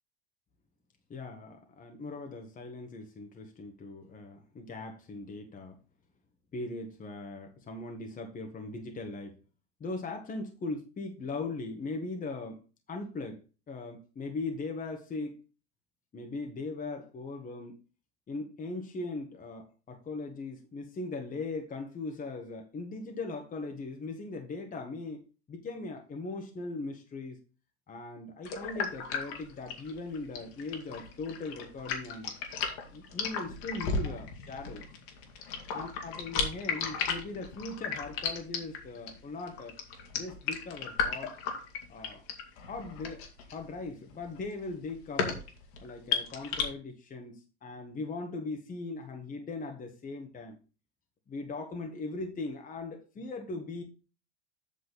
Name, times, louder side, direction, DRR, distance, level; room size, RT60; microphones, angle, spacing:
voice 1, 1.1-5.8 6.5-9.4 9.8-12.6 12.9-13.4 13.7-15.4 16.1-17.8 18.3-25.2 25.5-27.4 27.9-32.3 32.9-34.9 35.7-39.8 40.1-41.3 41.9-42.2 42.7-45.5 45.8-50.6 51.3-53.8, left 3 dB, 25° left, 1.6 m, -39 dB
sound 1, 28.5-46.6, left 6 dB, 65° left, 2.6 m, -35 dB
8.4 x 6.3 x 4.1 m
hypercardioid pair, 95°, 33 cm